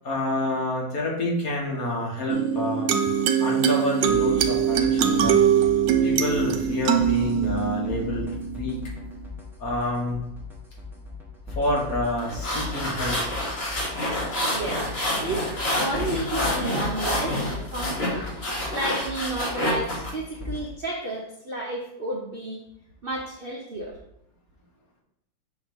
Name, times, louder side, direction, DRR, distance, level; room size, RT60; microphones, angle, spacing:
voice 1, 0.0-3.1 3.4-5.4 6.0-8.8 9.6-10.2 11.5-13.3, left 1 dB, 50° left, -3 dB, 1.8 m, -28 dB
sound 1, 2.3-9.3, right 8 dB, 80° right, 1.3 m, -23 dB
sound 2, 4.1-20.6, left 3 dB, ahead, 0.8 m, -38 dB
sound 3, 12.2-20.1, left 1 dB, 35° left, 1.6 m, -28 dB
voice 2, 14.4-14.8 15.2-15.5 15.8-17.4 17.7-18.3 18.7-22.6 23.0-24.0, right 2 dB, 50° right, -2 dB, 0.6 m, -31 dB
6.2 x 3.1 x 5.2 m, 0.78 s
omnidirectional pair, 2.0 m